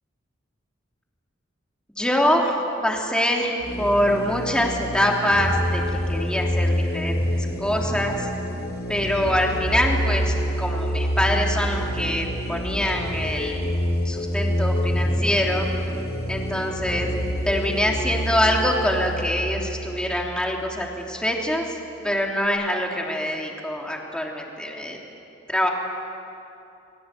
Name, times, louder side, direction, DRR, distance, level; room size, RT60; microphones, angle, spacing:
voice 1, 2.0-2.6 2.8-8.3 8.9-13.7 14.0-15.7 16.3-17.1 17.4-21.8 22.0-25.0 25.5-25.7, equal, 5° left, 0 dB, 3.2 m, -24 dB
sound 1, 3.6-21.0, equal, 55° left, 5.5 m, -27 dB
30.0 x 22.5 x 8.5 m, 2.8 s
head